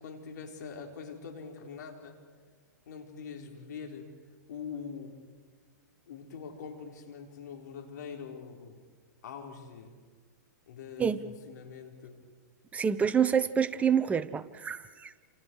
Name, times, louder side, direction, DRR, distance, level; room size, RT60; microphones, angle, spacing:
voice 1, 0.0-2.2 2.9-4.1 4.5-5.1 6.1-8.7 9.2-10.0 10.7-12.2, left 6 dB, 70° left, 2 dB, 4.8 m, -43 dB
voice 2, 12.7-15.2, right 7 dB, 15° right, 11 dB, 1.0 m, -27 dB
29.0 x 28.0 x 4.9 m, 1.6 s
hypercardioid pair, 130°, 10 cm